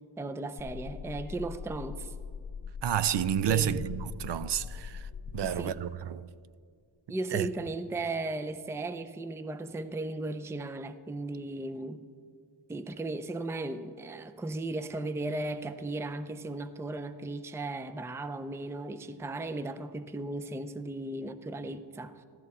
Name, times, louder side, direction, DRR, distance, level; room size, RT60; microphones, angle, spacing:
voice 1, 0.2-2.1 3.5-3.9 5.4-5.8 7.1-12.0 12.7-22.2, right 2 dB, 5° right, 0.4 m, -36 dB
sound 1, 0.6-5.6, left 6 dB, 40° left, 0.8 m, -41 dB
voice 2, 2.8-5.1 5.3-6.3 7.3-7.5, right 10 dB, 65° right, 0.5 m, -30 dB
15.0 x 13.5 x 4.2 m
wide cardioid pair, 105°, 45 cm